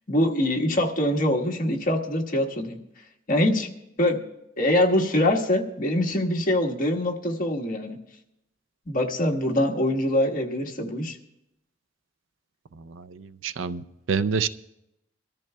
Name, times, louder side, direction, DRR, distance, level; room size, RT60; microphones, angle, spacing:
voice 1, 0.1-2.8 3.3-3.7 4.0-4.2 4.6-8.0 8.9-11.2, left 1 dB, 45° left, 0 dB, 1.5 m, -24 dB
voice 2, 12.7-14.5, right 6 dB, 85° right, 13 dB, 0.5 m, -28 dB
23.5 x 13.5 x 2.3 m, 0.85 s
head